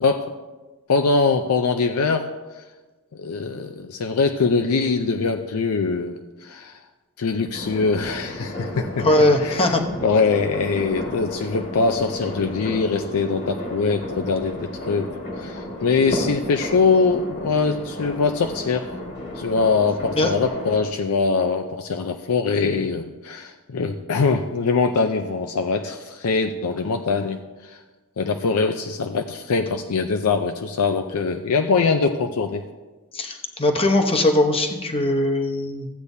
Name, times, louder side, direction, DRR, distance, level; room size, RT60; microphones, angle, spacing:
voice 1, 0.0-0.3 0.9-2.6 3.2-6.8 7.2-9.1 9.4-9.8 10.0-15.1 15.4-18.9 19.3-27.8 28.2-32.7, left 4 dB, 75° left, 6 dB, 0.5 m, -23 dB
sound 1, 7.5-20.8, left 1 dB, 50° left, 1.7 m, -33 dB
voice 2, 9.0-9.8 20.1-20.3 33.1-35.9, left 1 dB, 25° left, 4 dB, 0.9 m, -20 dB
15.0 x 8.3 x 2.7 m, 1.2 s
head